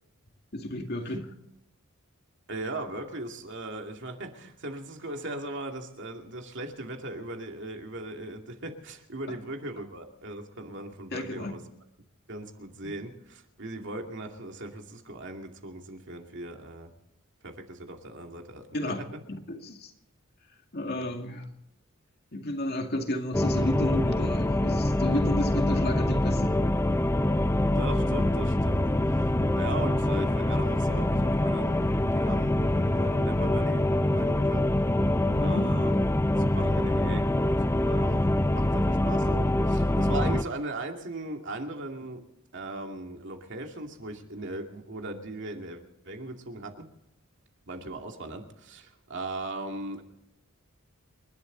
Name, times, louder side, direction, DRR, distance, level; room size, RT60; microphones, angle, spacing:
voice 1, 0.5-1.4 9.3-9.4 11.1-11.5 12.8-12.9 18.7-19.9 20.7-21.5 22.3-26.6 35.3-35.8, left 1 dB, 50° left, 2.1 m, -32 dB
voice 2, 2.5-11.6 12.3-16.9 17.4-18.9 20.8-21.1 27.7-34.7 35.4-36.0 36.4-42.2 42.5-46.9 47.7-50.0, right 2 dB, 55° right, 2.5 m, -38 dB
sound 1, 23.3-40.4, left 1 dB, 15° left, 0.5 m, -25 dB
29.0 x 12.0 x 3.9 m
head